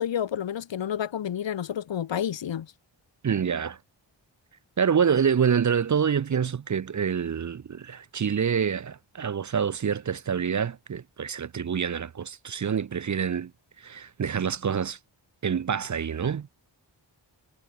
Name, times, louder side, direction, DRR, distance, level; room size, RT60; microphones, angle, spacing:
voice 1, 0.0-2.7, left 9 dB, 75° left, 0.9 m, -30 dB
voice 2, 3.2-3.8 4.8-13.5 13.8-15.0 15.4-16.5, right 7 dB, 40° right, 0.5 m, -26 dB
wide cardioid pair, 90°, 45 cm